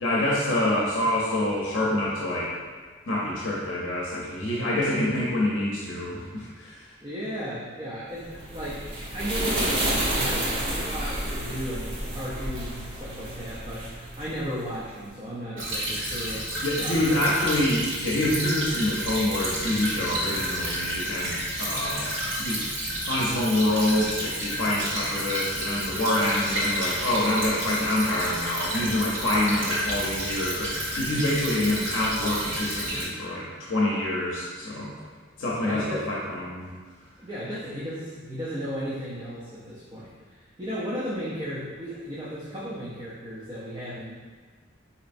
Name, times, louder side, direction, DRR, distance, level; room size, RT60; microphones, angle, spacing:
voice 1, 0.0-2.5 3.1-6.9 16.6-22.1 22.4-22.6 23.1-34.9 35.4-36.7, left 1 dB, 75° left, -5 dB, 0.6 m, -26 dB
voice 2, 7.0-8.9 9.1-16.5 16.8-17.0 35.6-36.1 37.2-44.1, equal, 25° right, -9 dB, 0.5 m, -35 dB
sound 1, 8.2-14.9, right 1 dB, 60° right, 1.0 m, -30 dB
Stream / Trickle dribble, 15.6-33.0, right 1 dB, 80° right, 1.3 m, -30 dB
4.2 x 2.9 x 2.5 m, 1.5 s
head